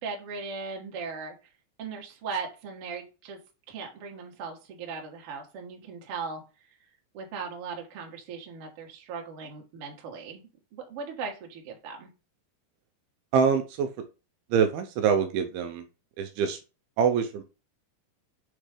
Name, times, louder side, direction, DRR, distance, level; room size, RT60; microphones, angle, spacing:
voice 1, 0.0-1.3 1.8-3.4 3.7-6.4 7.1-12.1, right 5 dB, 65° right, 1.5 m, -38 dB
voice 2, 13.3-13.9 14.5-15.8 16.2-16.6 17.0-17.4, right 6 dB, 80° right, 2.4 m, -24 dB
6.7 x 3.2 x 4.9 m
omnidirectional pair, 4.7 m